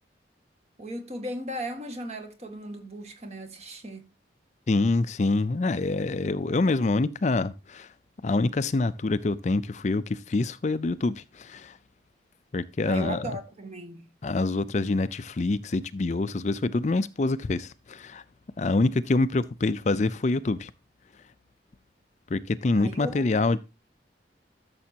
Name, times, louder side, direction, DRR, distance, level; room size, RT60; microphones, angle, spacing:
voice 1, 0.8-4.1 12.8-14.1 22.7-23.4, right 1 dB, 35° right, 1.7 m, -37 dB
voice 2, 4.7-7.9 8.2-11.8 12.5-13.3 14.2-18.2 18.6-20.7 22.3-23.6, left 3 dB, 40° left, 0.4 m, -26 dB
13.0 x 6.9 x 2.8 m
head